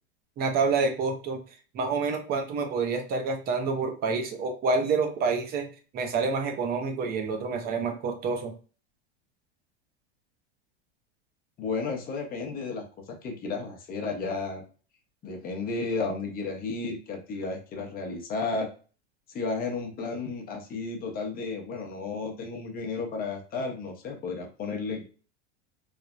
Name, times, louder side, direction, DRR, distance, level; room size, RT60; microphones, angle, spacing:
voice 1, 0.4-1.4 1.7-8.5, right 4 dB, 30° right, 5 dB, 0.5 m, -28 dB
voice 2, 11.6-14.6 15.2-18.7 19.3-25.0, left 4 dB, 25° left, 3 dB, 0.7 m, -33 dB
3.2 x 2.0 x 2.3 m, 0.38 s
supercardioid pair, 120°, 34 cm